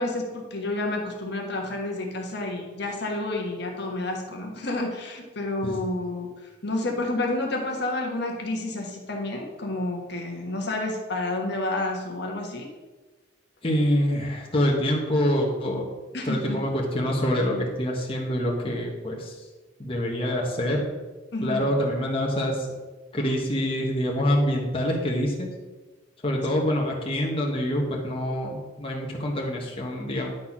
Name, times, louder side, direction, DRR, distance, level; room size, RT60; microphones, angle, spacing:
voice 1, 0.0-6.3 6.6-12.7 16.1-16.6 21.3-21.7, left 2 dB, 55° left, 1 dB, 1.4 m, -30 dB
voice 2, 13.6-15.8 16.2-19.3 19.8-20.8 21.4-22.6 23.1-25.5 26.2-30.3, equal, 30° left, -2 dB, 1.3 m, -26 dB
10.5 x 4.2 x 6.0 m, 1.3 s
head